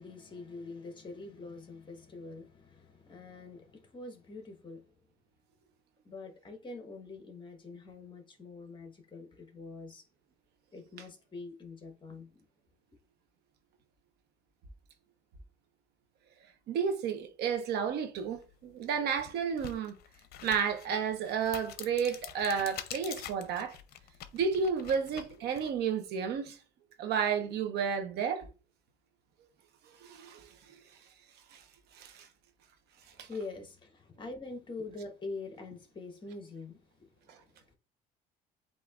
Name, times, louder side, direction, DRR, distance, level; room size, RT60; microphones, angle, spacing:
voice 1, 0.0-4.9 6.0-10.0 10.7-12.4 33.2-37.7, left 3 dB, 30° left, 1.3 m, -45 dB
voice 2, 16.7-19.9 20.4-23.8 24.3-26.5 27.0-28.5 30.0-30.5 31.5-31.6 32.0-32.3 33.2-33.3, right 6 dB, 75° right, 0.9 m, -32 dB
sound 1, 18.4-18.5 19.1-25.7, left 10 dB, 65° left, 0.6 m, -46 dB
7.9 x 2.8 x 2.4 m
cardioid pair, 110°, 17 cm